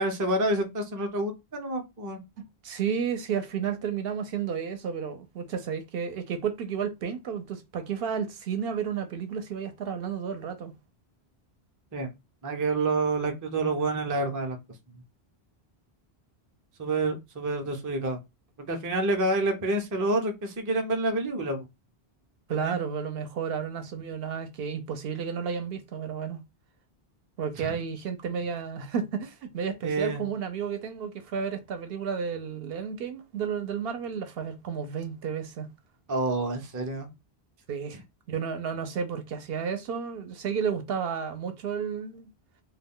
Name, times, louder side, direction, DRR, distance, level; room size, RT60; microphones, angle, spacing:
voice 1, 0.0-2.2 11.9-12.1 12.4-14.6 16.8-18.2 18.7-21.7 22.6-22.8 27.6-27.7 29.8-30.3 36.1-37.1, right 2 dB, 30° right, 0.4 m, -28 dB
voice 2, 2.4-10.7 22.5-26.4 27.4-35.7 37.7-38.0 38.3-42.3, right 7 dB, 70° right, 0.7 m, -32 dB
2.2 x 2.1 x 3.5 m
omnidirectional pair, 1.1 m